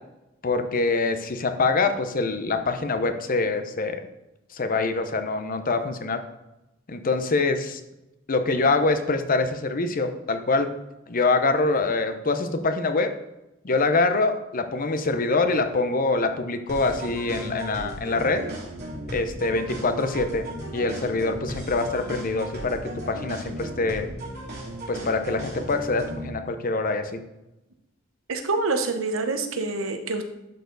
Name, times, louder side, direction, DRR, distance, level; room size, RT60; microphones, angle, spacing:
voice 1, 0.4-4.1 4.5-6.2 6.9-7.8 8.3-10.7 11.1-13.1 13.6-18.4 19.1-20.5 20.7-24.1 24.9-27.2, left 3 dB, 45° left, 8 dB, 0.7 m, -24 dB
sound 1, 16.7-26.3, right 1 dB, 55° right, 2.6 m, -36 dB
voice 2, 28.3-30.2, right 3 dB, 80° right, 6 dB, 1.0 m, -26 dB
11.5 x 4.5 x 3.9 m, 0.95 s
head